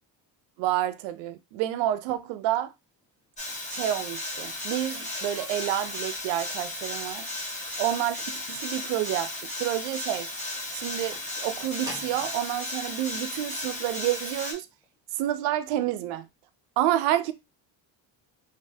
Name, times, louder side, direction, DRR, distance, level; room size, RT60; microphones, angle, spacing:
voice 1, 0.6-2.7 3.7-7.3 7.8-9.3 9.6-10.3 10.7-14.7 15.2-16.3 16.8-17.3, right 12 dB, 85° right, 0.5 m, -29 dB
sound 1, 3.4-14.5, left 2 dB, 15° left, 1.0 m, -35 dB
sound 2, 3.5-12.3 13.2-13.3 13.9-14.1 14.4-14.5 14.8-14.9, equal, 10° right, 1.1 m, -47 dB
3.3 x 2.6 x 2.6 m
cardioid pair, 100°, 45 cm